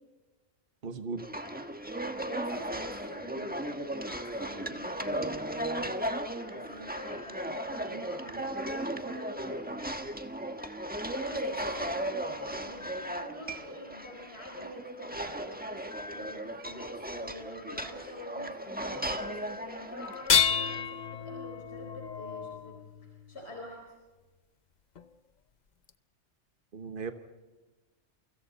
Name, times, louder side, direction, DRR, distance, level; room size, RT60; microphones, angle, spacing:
voice 1, 0.8-1.2 26.7-27.1, right 4 dB, 45° right, 7 dB, 1.4 m, -36 dB
sound 1, 1.2-20.8, right 1 dB, 10° right, 1.2 m, -36 dB
voice 2, 2.2-9.9 11.1-22.8 23.0-23.9, left 1 dB, 60° left, -1 dB, 4.8 m, -45 dB
sound 2, 20.1-23.4 25.0-25.1 25.9-26.0, left 7 dB, 40° left, 0.8 m, -30 dB
28.5 x 25.0 x 4.1 m, 1.2 s
omnidirectional pair, 1.2 m